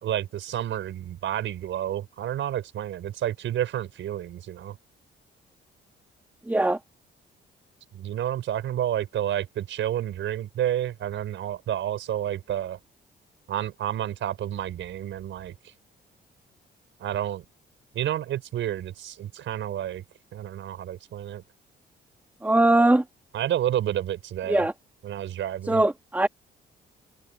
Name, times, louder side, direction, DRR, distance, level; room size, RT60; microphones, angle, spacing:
voice 1, 0.0-4.8 7.9-12.8 13.5-15.5 17.0-17.4 17.9-20.0 20.3-21.4 23.3-24.7 25.0-25.8, right 11 dB, 75° right, 5.5 m, -30 dB
voice 2, 6.5-6.8 22.4-23.0 24.5-24.7 25.7-26.3, right 2 dB, 10° right, 1.7 m, -20 dB
cardioid pair, 90°, 20 cm